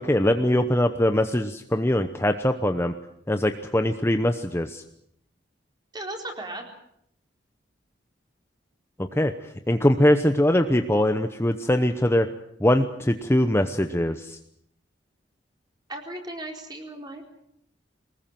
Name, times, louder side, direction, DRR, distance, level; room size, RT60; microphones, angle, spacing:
voice 1, 0.0-2.9 3.3-4.8 9.0-9.3 9.7-12.3 12.6-14.4, left 1 dB, 15° left, 7 dB, 0.9 m, -22 dB
voice 2, 5.9-6.6 15.9-17.2, right 1 dB, 20° right, 2 dB, 4.4 m, -36 dB
23.5 x 20.0 x 7.6 m, 0.72 s
head